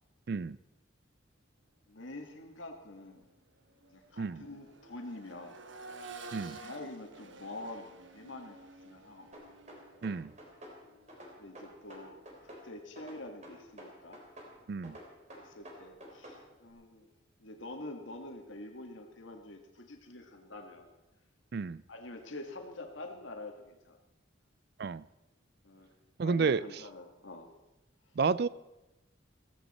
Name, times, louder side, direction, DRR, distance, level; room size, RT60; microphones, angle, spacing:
voice 1, 0.3-0.6 4.2-4.5 6.3-6.6 10.0-10.3 14.7-15.0 21.5-21.8 24.8-25.0 26.2-26.6 28.2-28.5, right 5 dB, 55° right, 0.4 m, -31 dB
voice 2, 1.9-3.2 3.9-5.6 6.6-9.4 11.4-14.2 15.3-17.1 17.4-20.9 21.9-24.0 25.6-25.9 26.2-27.5, left 2 dB, 80° left, 1.8 m, -46 dB
Accelerating revving vroom, 2.4-2.6 3.0-12.9 14.6-14.7, right 3 dB, 75° right, 1.1 m, -52 dB
sound 1, 9.3-10.8 11.1-12.7 13.0-14.5 14.8-16.4, right 1 dB, 35° right, 3.3 m, -49 dB
15.5 x 15.5 x 4.3 m
head